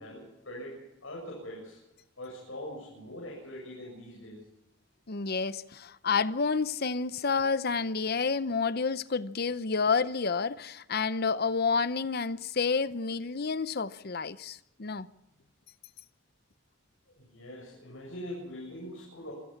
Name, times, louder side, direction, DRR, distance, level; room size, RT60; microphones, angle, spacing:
voice 1, 0.0-1.8 2.2-4.4 17.2-19.3, left 1 dB, 85° left, 7.9 m, -42 dB
voice 2, 5.1-15.1, left 5 dB, 50° left, 0.8 m, -29 dB
27.0 x 16.5 x 5.9 m
head